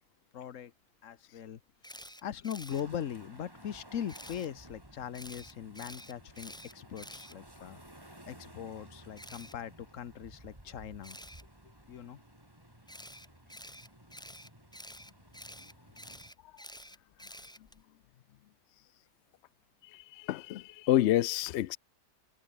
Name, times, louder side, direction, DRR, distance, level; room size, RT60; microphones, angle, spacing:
voice 1, 0.3-0.7 1.0-1.6 2.2-7.8 8.3-11.2 11.6-12.2, left 9 dB, 55° left, 1.2 m, -40 dB
Camera, 1.8-2.8 4.1-4.5 5.1-7.9 9.2-9.5 11.0-11.4 12.9-17.8, equal, 5° left, 1.9 m, -49 dB
sound 1, 2.7-16.3, right 1 dB, 15° right, 4.1 m, -55 dB
voice 2, 19.8-21.8, left 13 dB, 75° left, 0.6 m, -29 dB
omnidirectional pair, 1.7 m